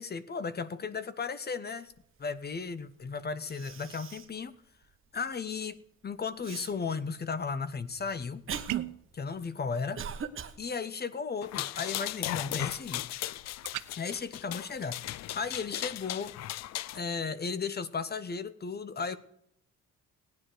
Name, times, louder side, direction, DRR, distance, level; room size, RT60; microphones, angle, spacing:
voice 1, 0.0-1.9 2.2-4.5 5.1-8.4 9.1-10.0 10.6-13.1 14.0-15.1 15.3-16.3 16.9-19.2, left 5 dB, 35° left, 14 dB, 0.9 m, -35 dB
Cough, 3.0-3.1 3.5-4.4 4.8-4.9 6.4-6.7 7.5-10.6, right 7 dB, 45° right, 1.1 m, -40 dB
sound 1, 8.7-9.1 13.6-13.9, right 15 dB, 80° right, 0.6 m, -34 dB
sound 2, 11.4-17.0, left 14 dB, 60° left, 0.4 m, -37 dB
16.0 x 9.6 x 5.0 m, 0.75 s
cardioid pair, 90°, 30 cm